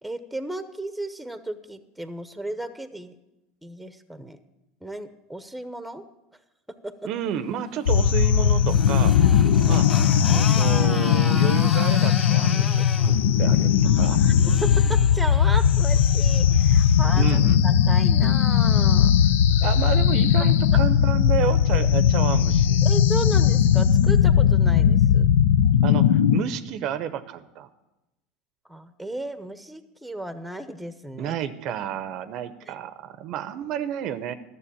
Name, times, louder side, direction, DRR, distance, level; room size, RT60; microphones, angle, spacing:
voice 1, 0.0-3.2 3.6-4.4 4.8-6.0 6.8-6.9 9.4-9.8 13.8-14.3 14.6-19.1 22.8-25.3 28.7-31.4, right 1 dB, 5° right, 11 dB, 0.9 m, -35 dB
voice 2, 7.0-9.2 9.7-9.9 10.3-14.2 17.1-17.7 19.6-22.9 25.8-27.7 31.2-34.3, right 9 dB, 55° right, 13 dB, 0.7 m, -31 dB
Motorcycle, 7.6-17.0, left 3 dB, 25° left, 2.2 m, -37 dB
sound 1, 7.9-26.4, left 8 dB, 85° left, 0.5 m, -19 dB
12.5 x 6.8 x 8.4 m, 0.95 s
hypercardioid pair, 95°, 0 cm